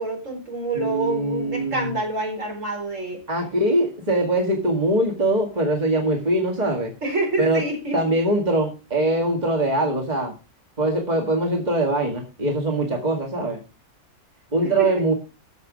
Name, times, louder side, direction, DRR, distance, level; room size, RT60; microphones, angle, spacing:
voice 1, 0.0-3.2 7.0-8.0 14.6-14.9, right 2 dB, 55° right, 2 dB, 4.7 m, -27 dB
voice 2, 0.7-2.0 3.3-6.9 7.4-7.6 7.9-10.3 10.8-13.6 14.5-15.1, right 1 dB, 30° right, 1 dB, 2.1 m, -22 dB
15.0 x 6.0 x 5.2 m, 0.31 s
omnidirectional pair, 1.6 m